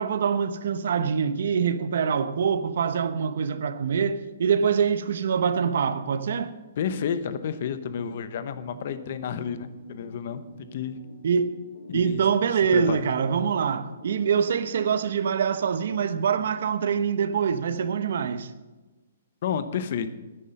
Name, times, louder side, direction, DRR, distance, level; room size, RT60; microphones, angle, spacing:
voice 1, 0.0-6.5 11.2-11.5 11.9-18.5, right 7 dB, 60° right, 0.9 m, -24 dB
voice 2, 6.8-11.0 11.9-12.2 12.7-13.1 19.4-20.1, left 7 dB, 45° left, 0.8 m, -31 dB
sound 1, 7.9-15.3, equal, 70° left, 4.8 m, -47 dB
9.9 x 9.8 x 6.6 m
hypercardioid pair, 170°, 0 cm